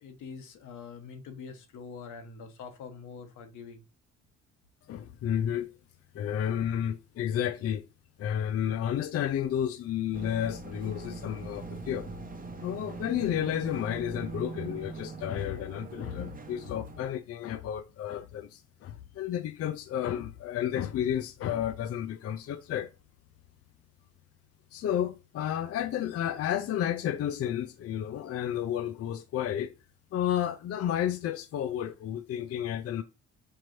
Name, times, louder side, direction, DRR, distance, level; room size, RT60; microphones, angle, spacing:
voice 1, 0.0-3.8 6.2-6.4, left 5 dB, 80° left, 1.0 m, -45 dB
voice 2, 4.9-5.7 6.1-7.9 8.2-12.1 12.6-22.9 24.7-29.7 30.1-33.0, left 10 dB, 50° left, 0.4 m, -31 dB
sound 1, 10.1-17.1, right 3 dB, 30° right, 0.7 m, -42 dB
4.5 x 2.5 x 3.1 m
cardioid pair, 90°, 30 cm